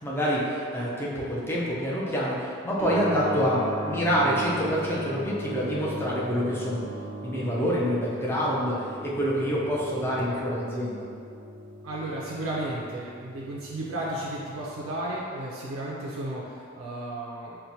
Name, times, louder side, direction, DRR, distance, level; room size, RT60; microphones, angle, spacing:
voice 1, 0.0-6.8 7.2-11.1, equal, 10° left, -6 dB, 0.4 m, -27 dB
Keyboard (musical), 2.8-15.2, equal, 60° left, 1.4 m, -37 dB
voice 2, 11.8-17.6, right 1 dB, 85° right, -5 dB, 0.4 m, -33 dB
4.3 x 2.1 x 2.7 m, 2.3 s
head